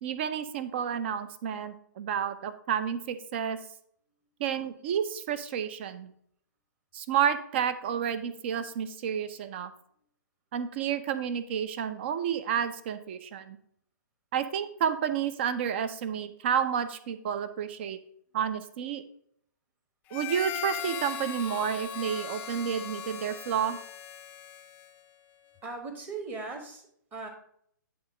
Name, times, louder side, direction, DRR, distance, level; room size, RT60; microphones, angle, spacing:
voice 1, 0.0-3.6 4.4-6.1 6.9-9.7 10.5-13.6 14.3-18.0 18.3-19.0 20.1-23.8, right 8 dB, 35° right, 13 dB, 0.5 m, -30 dB
Harmonica, 20.1-25.1, left 9 dB, 15° left, 0.4 m, -39 dB
voice 2, 25.6-27.3, right 3 dB, 15° right, 4 dB, 1.1 m, -39 dB
9.5 x 3.5 x 4.9 m, 0.67 s
figure-of-eight pair, 125°, 11 cm